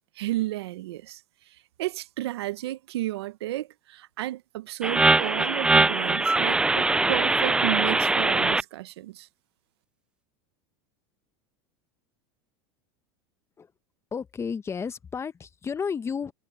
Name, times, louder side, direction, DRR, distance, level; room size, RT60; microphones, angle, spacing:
voice 1, 0.2-1.2 1.8-9.3, right 15 dB, 85° right, 1.0 m, -32 dB
sound 1, 4.8-8.6, right 3 dB, 5° right, 0.3 m, -22 dB
voice 2, 14.1-16.3, left 6 dB, 20° left, 0.9 m, -32 dB
supercardioid pair, 120°, 13 cm